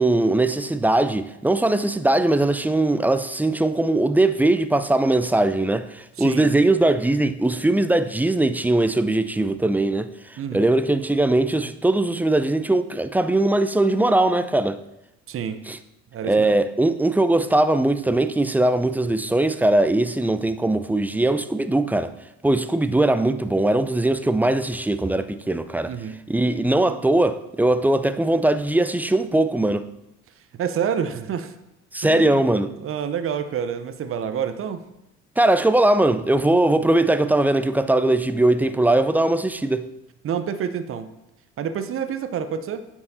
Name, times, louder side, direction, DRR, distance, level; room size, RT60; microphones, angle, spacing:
voice 1, 0.0-14.8 15.7-15.8 16.2-22.1 22.4-25.9 26.3-29.9 31.9-32.7 35.4-39.9, right 2 dB, 5° right, 0.3 m, -20 dB
voice 2, 6.2-6.5 10.4-10.6 15.3-15.6 16.1-16.5 25.9-26.2 30.6-31.5 32.0-32.4 32.8-34.8 40.2-41.1 41.6-42.9, right 8 dB, 35° right, 0.7 m, -28 dB
8.4 x 4.8 x 4.0 m
hypercardioid pair, 60°, 36 cm